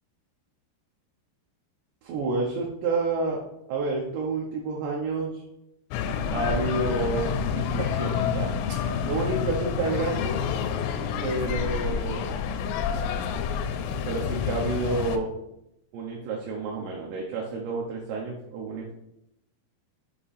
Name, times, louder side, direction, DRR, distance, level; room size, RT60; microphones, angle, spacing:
voice 1, 2.0-3.4 3.7-5.4 6.3-10.4 11.2-12.4 14.1-15.3 15.9-18.9, right 3 dB, 75° right, -2 dB, 2.6 m, -29 dB
sound 1, 5.9-15.2, left 7 dB, 85° left, 3.1 m, -28 dB
8.3 x 3.0 x 5.6 m, 0.86 s
omnidirectional pair, 5.9 m